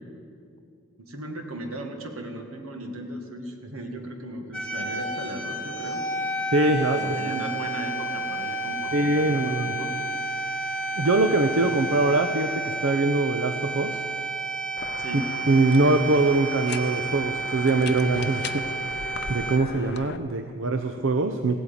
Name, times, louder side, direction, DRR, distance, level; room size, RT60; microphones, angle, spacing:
voice 1, 1.0-6.1 6.6-9.9 11.6-11.8 15.0-15.3, right 1 dB, 85° right, 4 dB, 1.9 m, -37 dB
sound 1, 4.5-19.6, right 2 dB, 5° left, 1.2 m, -31 dB
voice 2, 6.5-7.4 8.9-9.8 10.9-14.0 15.1-18.9 19.3-21.6, right 2 dB, 65° right, 7 dB, 0.6 m, -23 dB
sound 2, 14.8-20.2, left 5 dB, 50° left, 0.5 m, -37 dB
16.0 x 9.0 x 8.5 m, 2.4 s
head